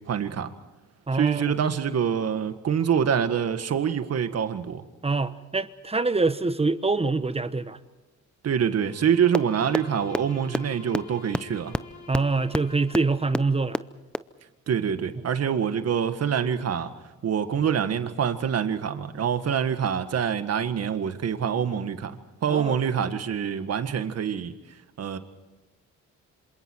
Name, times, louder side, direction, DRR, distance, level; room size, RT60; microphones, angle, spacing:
voice 1, 0.1-0.5 1.1-4.9 8.4-11.8 14.7-16.9 17.2-24.5 25.0-25.2, right 8 dB, 55° right, 1.8 m, -25 dB
voice 2, 1.1-1.4 5.0-7.8 12.1-13.8 22.5-22.8, right 3 dB, 20° right, 1.1 m, -25 dB
Bowed string instrument, 8.9-13.8, left 3 dB, 65° left, 3.8 m, -46 dB
sound 1, 9.3-9.4 9.7-9.8 10.1-10.2 10.5-10.6 10.9-11.0 11.3-11.4 11.7-11.8 12.1-12.2 12.5-12.6 12.9-13.0 13.3-13.4 13.7-13.8 14.1-14.2, left 1 dB, 5° left, 0.6 m, -24 dB
27.0 x 27.0 x 4.7 m
cardioid pair, 90°, 30 cm